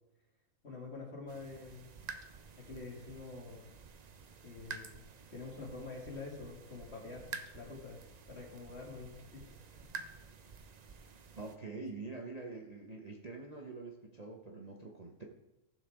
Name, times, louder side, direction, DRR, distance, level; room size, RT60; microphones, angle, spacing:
voice 1, 0.6-1.9 2.6-3.7 4.4-10.0, left 3 dB, 45° left, -2 dB, 2.5 m, -47 dB
sound 1, 1.3-11.6, right 5 dB, 60° right, 0.4 m, -50 dB
voice 2, 11.4-15.2, right 3 dB, 30° right, -1 dB, 0.9 m, -45 dB
15.0 x 6.9 x 3.6 m, 0.96 s
omnidirectional pair, 1.5 m